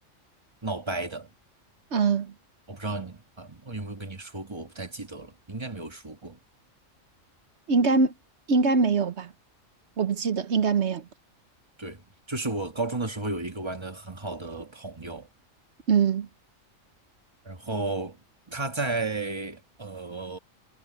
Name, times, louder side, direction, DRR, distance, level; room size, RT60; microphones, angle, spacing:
voice 1, 0.6-1.3 2.7-6.4 11.8-15.3 17.4-18.2 18.5-20.4, right 2 dB, 20° right, 1.6 m, -33 dB
voice 2, 1.9-2.3 7.7-8.1 8.5-9.3 10.0-11.1 15.9-16.3, right 5 dB, 60° right, 1.3 m, -23 dB
omnidirectional pair, 1.4 m